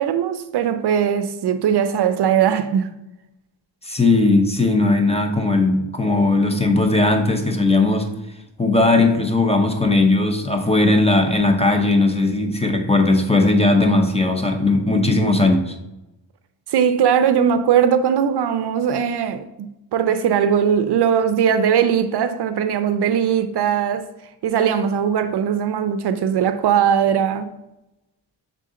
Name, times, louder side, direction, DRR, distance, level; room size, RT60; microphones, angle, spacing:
voice 1, 0.0-2.9 16.7-24.1 24.4-27.5, right 8 dB, 60° right, 0.5 m, -19 dB
voice 2, 3.8-8.1 8.6-15.7, left 2 dB, 15° left, 0.6 m, -18 dB
6.7 x 3.8 x 3.7 m
wide cardioid pair, 120°, 45 cm